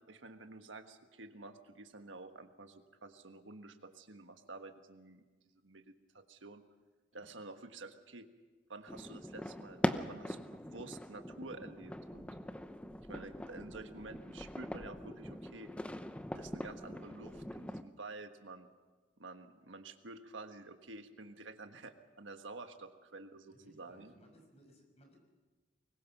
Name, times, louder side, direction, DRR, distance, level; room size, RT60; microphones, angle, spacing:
voice 1, 0.1-5.2 5.6-6.6 7.1-8.3 8.7-12.3 13.1-15.7 16.3-18.7 19.2-24.1, right 3 dB, 75° right, 7 dB, 1.5 m, -50 dB
sound 1, 8.9-17.8, equal, 5° left, 0.8 m, -41 dB
voice 2, 23.5-25.2, equal, 35° left, 3 dB, 5.9 m, -63 dB
24.5 x 21.0 x 6.0 m, 1.3 s
head